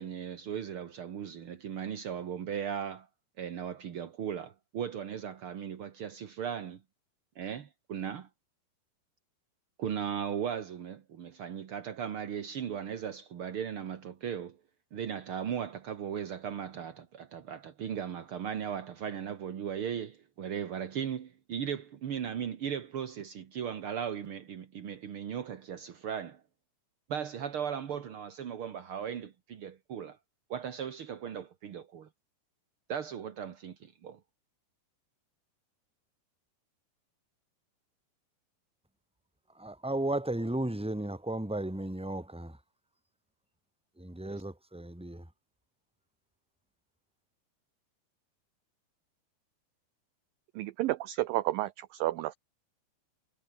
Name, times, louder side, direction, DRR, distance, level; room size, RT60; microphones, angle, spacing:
voice 1, 0.0-3.1 3.4-6.8 7.3-8.3 9.8-14.6 14.9-26.4 27.1-30.2 30.5-32.1 32.9-34.2 44.2-44.4, right 8 dB, 60° right, 1.4 m, -37 dB
voice 2, 39.5-42.6 44.0-45.3, right 1 dB, ahead, 3.3 m, -34 dB
voice 3, 50.6-52.4, right 16 dB, 75° right, 2.2 m, -31 dB
omnidirectional pair, 4.7 m